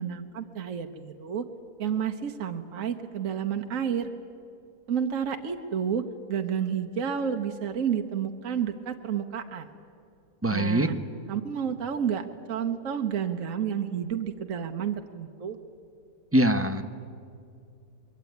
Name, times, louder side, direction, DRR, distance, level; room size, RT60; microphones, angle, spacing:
voice 1, 0.0-1.4 1.8-4.1 4.9-9.7 10.5-10.9 11.3-15.6, right 8 dB, 55° right, 5 dB, 1.3 m, -30 dB
voice 2, 10.4-10.9 16.3-16.8, right 1 dB, 10° right, 7 dB, 0.7 m, -23 dB
24.0 x 22.5 x 9.4 m, 2.5 s
omnidirectional pair, 1.7 m